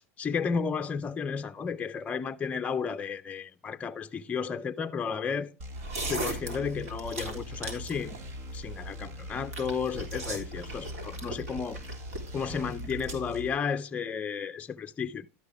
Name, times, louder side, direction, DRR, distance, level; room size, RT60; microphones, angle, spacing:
voice 1, 0.2-5.5 6.0-8.2 8.5-11.8 12.3-15.3, left 6 dB, 15° left, 0.4 m, -33 dB
sound 1, 5.6-13.5, left 1 dB, 65° right, 1.6 m, -43 dB
sound 2, 5.7-13.1, right 2 dB, 90° right, 3.4 m, -39 dB
12.0 x 6.5 x 3.4 m
supercardioid pair, 125°, 8 cm